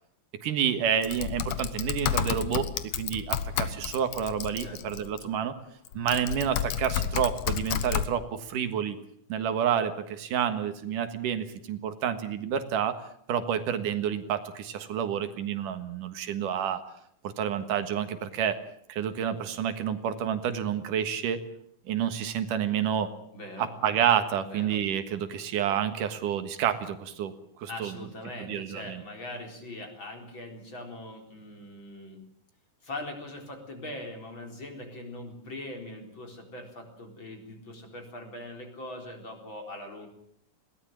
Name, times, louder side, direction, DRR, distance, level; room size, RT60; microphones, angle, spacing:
voice 1, 0.4-2.7 3.0-5.5 5.9-9.0 9.3-13.0 13.3-16.8 17.2-18.6 18.9-21.4 21.9-23.1 23.6-27.3 27.6-27.9 28.4-29.0, right 8 dB, 80° right, 10 dB, 3.1 m, -29 dB
Typing, 1.0-5.2 5.9-8.1, left 9 dB, 65° left, 2.2 m, -31 dB
voice 2, 23.3-23.7 24.4-24.8 27.7-32.2 32.8-40.1, left 1 dB, 35° left, 3 dB, 4.7 m, -41 dB
21.0 x 17.5 x 8.9 m, 0.70 s
omnidirectional pair, 3.7 m